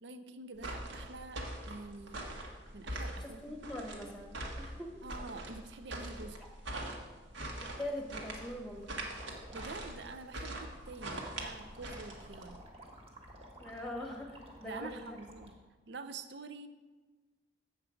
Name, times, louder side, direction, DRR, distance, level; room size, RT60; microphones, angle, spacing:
voice 1, 0.0-2.3 2.7-3.6 5.0-6.4 9.5-12.6 14.6-15.6 15.9-16.7, right 3 dB, 65° right, 10 dB, 0.6 m, -47 dB
sound 1, 0.6-12.5, right 1 dB, 85° right, 1.5 m, -42 dB
voice 2, 3.2-5.0 7.6-8.9 13.6-15.0, left 1 dB, ahead, 2 dB, 1.0 m, -42 dB
sound 2, 8.8-15.5, right 1 dB, 30° right, 1.4 m, -53 dB
8.0 x 7.3 x 5.0 m, 1.3 s
head